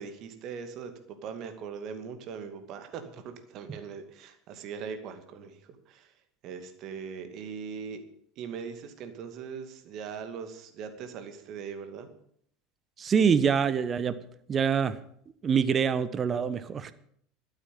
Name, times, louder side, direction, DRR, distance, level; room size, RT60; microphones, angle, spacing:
voice 1, 0.0-5.6 5.9-6.1 6.4-8.0 8.4-12.1, right 6 dB, 50° right, 8 dB, 2.3 m, -40 dB
voice 2, 13.0-14.2 14.5-15.0 15.4-16.9, right 6 dB, 35° right, 14 dB, 1.1 m, -25 dB
12.5 x 9.0 x 8.7 m, 0.66 s
hypercardioid pair, 80°, 0 cm